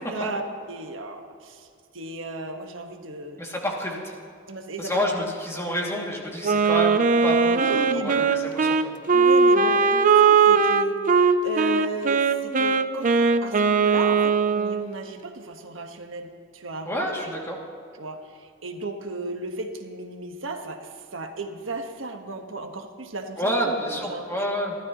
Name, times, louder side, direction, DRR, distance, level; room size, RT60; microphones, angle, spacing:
voice 1, 0.1-0.4 0.7-1.7 1.9-3.4 4.5-5.3 7.5-8.3 9.1-11.0 11.4-17.3 18.0-24.6, right 2 dB, 75° right, 4 dB, 1.4 m, -35 dB
voice 2, 3.4-4.1 4.8-8.9 16.9-17.6 23.4-24.8, equal, 15° left, -2 dB, 2.4 m, -28 dB
Wind instrument woodwind instrument, 6.4-14.9, right 5 dB, 40° right, 0.6 m, -20 dB
28.5 x 13.0 x 3.0 m, 2.3 s
head